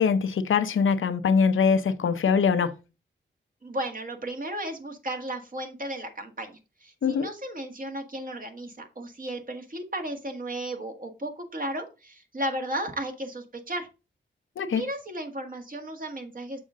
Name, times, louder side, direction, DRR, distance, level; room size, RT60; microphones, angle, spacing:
voice 1, 0.0-2.7 7.0-7.3 14.6-14.8, left 6 dB, 90° left, 0.7 m, -23 dB
voice 2, 3.6-13.9 14.6-16.6, right 1 dB, 45° right, 1.7 m, -34 dB
6.8 x 5.0 x 3.7 m
wide cardioid pair, 85°, 20 cm